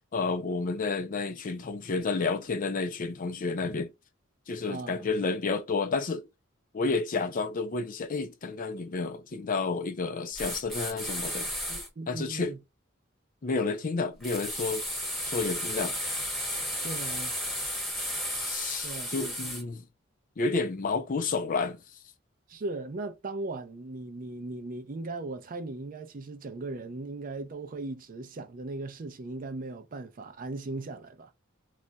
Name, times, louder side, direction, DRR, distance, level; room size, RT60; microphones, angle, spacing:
voice 1, 0.1-3.9 4.5-6.3 6.7-11.5 12.1-12.5 13.4-14.8 15.2-16.0 18.3-19.8 20.4-21.8, left 4 dB, 40° left, 0.5 m, -30 dB
voice 2, 4.7-5.0 11.7-12.6 16.8-17.4 18.8-19.4 22.5-31.3, right 2 dB, 45° right, 0.4 m, -38 dB
sound 1, 10.4-11.9 14.2-19.6, equal, ahead, 0.9 m, -33 dB
2.3 x 2.1 x 3.8 m
head